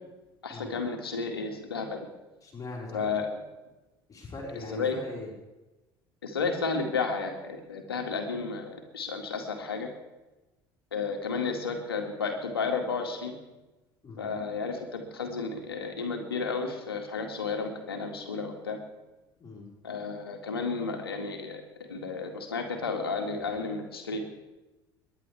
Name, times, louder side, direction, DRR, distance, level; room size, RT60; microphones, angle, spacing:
voice 1, 0.4-2.0 2.9-3.3 4.7-5.0 6.2-9.9 10.9-13.4 14.2-18.8 19.8-21.6 21.9-24.2, left 4 dB, 80° left, 4 dB, 2.1 m, -32 dB
voice 2, 2.4-3.1 4.1-5.3 14.0-14.3 19.4-19.7, left 2 dB, 30° left, -3 dB, 4.9 m, -40 dB
30.0 x 10.5 x 3.5 m, 1.1 s
figure-of-eight pair, 60°, 12 cm